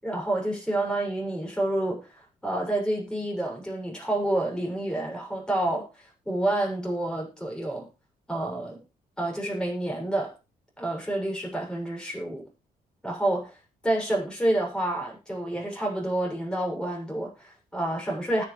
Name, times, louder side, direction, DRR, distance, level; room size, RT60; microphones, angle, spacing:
voice 1, 0.0-2.1 2.4-7.9 8.3-8.8 9.2-10.3 10.8-12.5 13.0-13.5 13.8-18.5, right 1 dB, 5° left, -1 dB, 7.1 m, -28 dB
20.0 x 6.7 x 3.4 m, 0.30 s
cardioid pair, 115°, 15 cm